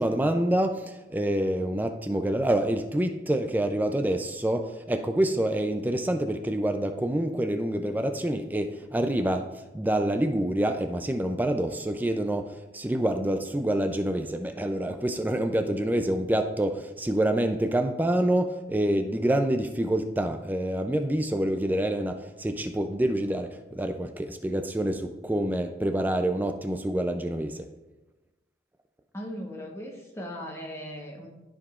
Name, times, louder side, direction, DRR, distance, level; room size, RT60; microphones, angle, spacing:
voice 1, 0.0-27.7, right 1 dB, 10° right, 7 dB, 0.3 m, -27 dB
voice 2, 29.1-31.3, equal, 15° left, -1 dB, 1.0 m, -38 dB
13.0 x 4.8 x 2.4 m, 1.1 s
head